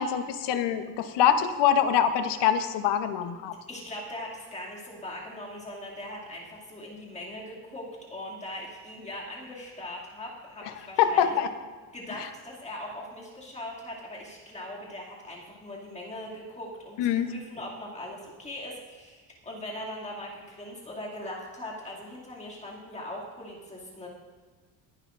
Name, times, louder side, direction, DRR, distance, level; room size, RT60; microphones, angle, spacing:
voice 1, 0.0-3.5 11.0-11.5 17.0-17.3, left 9 dB, 75° left, 9 dB, 1.0 m, -24 dB
voice 2, 3.7-11.4 11.9-24.1, left 1 dB, 15° left, -4 dB, 2.5 m, -40 dB
20.5 x 11.0 x 2.6 m, 1.4 s
cardioid pair, 160°, 42 cm